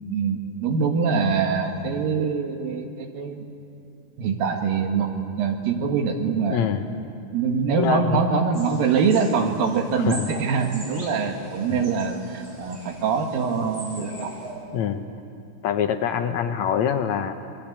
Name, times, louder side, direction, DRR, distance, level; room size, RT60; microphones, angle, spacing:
voice 1, 0.1-3.5 4.2-5.1 5.4-6.6 7.3-14.3, right 5 dB, 90° right, 4 dB, 3.5 m, -24 dB
voice 2, 6.5-6.8 7.8-8.2 10.1-10.3 11.7-11.8 14.7-15.1 15.6-17.3, left 8 dB, 70° left, 7 dB, 1.9 m, -24 dB
sound 1, 8.5-14.5, right 1 dB, 25° right, 6.4 m, -41 dB
25.5 x 22.5 x 8.7 m, 2.7 s
omnidirectional pair, 3.9 m